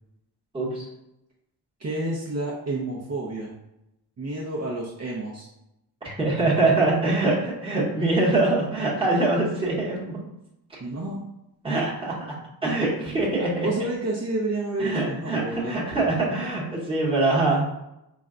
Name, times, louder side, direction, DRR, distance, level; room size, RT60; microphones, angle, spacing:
voice 1, 0.5-0.8 6.0-10.2 11.6-12.2 12.6-13.7 14.8-17.7, right 2 dB, 15° right, -6 dB, 1.0 m, -23 dB
voice 2, 1.8-3.5 4.2-5.5 10.8-11.3 13.4-15.8, right 2 dB, 40° right, -4 dB, 0.7 m, -30 dB
5.1 x 2.2 x 3.7 m, 0.87 s
wide cardioid pair, 170°, 42 cm